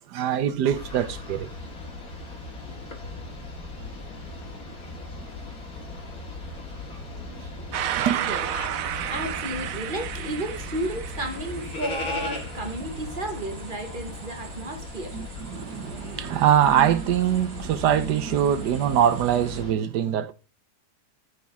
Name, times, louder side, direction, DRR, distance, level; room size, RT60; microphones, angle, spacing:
voice 1, 0.1-1.5 7.3-7.4 8.0-8.2 15.1-20.3, right 10 dB, 80° right, 1.3 m, -23 dB
sound 1, 0.7-19.7, left 2 dB, 60° left, 2.6 m, -38 dB
sound 2, 7.7-19.6, right 11 dB, 65° right, 0.9 m, -36 dB
voice 2, 8.2-8.5 9.1-15.2, right 1 dB, 30° right, 1.5 m, -33 dB
14.0 x 5.3 x 3.6 m
omnidirectional pair, 1.8 m